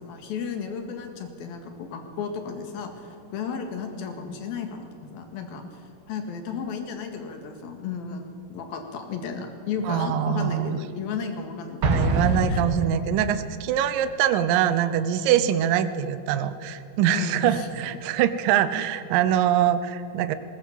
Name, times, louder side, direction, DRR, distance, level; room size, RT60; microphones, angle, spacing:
voice 1, 0.0-5.6 6.1-12.6 17.1-17.7, left 6 dB, 70° left, 5 dB, 3.6 m, -34 dB
voice 2, 9.8-10.8 11.8-20.4, right 10 dB, 75° right, 11 dB, 2.3 m, -23 dB
Explosion, 11.8-13.5, right 2 dB, 50° right, 2.7 m, -25 dB
20.0 x 18.5 x 7.4 m, 2.5 s
omnidirectional pair, 4.6 m